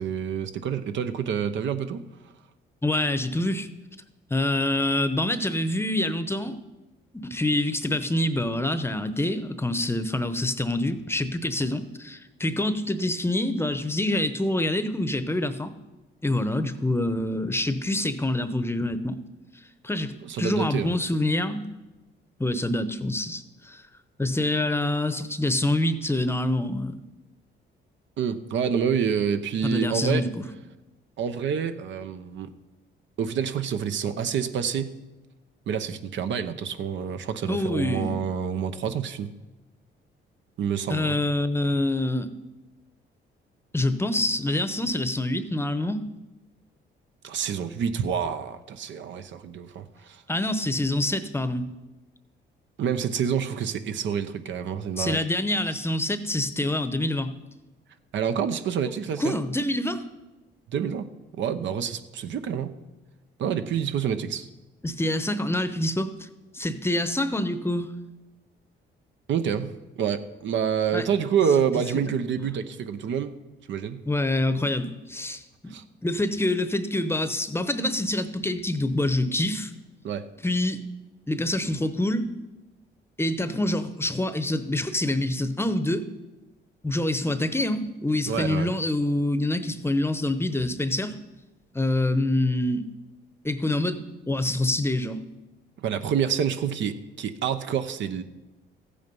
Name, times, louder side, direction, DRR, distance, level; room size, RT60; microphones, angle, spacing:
voice 1, 0.0-2.0 20.2-20.9 28.2-30.2 31.2-32.5 33.2-34.9 35.7-39.3 40.6-41.2 47.2-50.2 52.8-55.2 58.1-59.4 60.7-62.7 63.4-64.5 69.3-73.3 73.7-74.0 75.7-75.8 80.0-80.3 88.3-88.7 95.8-98.2, right 7 dB, 70° right, 10 dB, 0.9 m, -27 dB
voice 2, 2.8-3.7 4.3-6.6 7.1-15.7 16.2-19.2 19.8-20.1 20.4-21.7 22.4-23.8 24.2-27.0 29.6-30.4 37.5-38.2 40.9-42.3 43.7-46.0 50.3-51.7 55.0-57.3 59.2-60.0 64.8-66.3 66.5-67.9 70.9-71.1 71.9-72.1 72.4-72.5 74.1-75.8 76.0-79.7 80.4-80.8 81.3-82.3 83.2-86.1 86.8-91.1 91.7-92.9 93.4-95.2, left 1 dB, 10° left, 11 dB, 0.8 m, -26 dB
14.5 x 8.6 x 5.4 m, 1.1 s
cardioid pair, 90°, 20 cm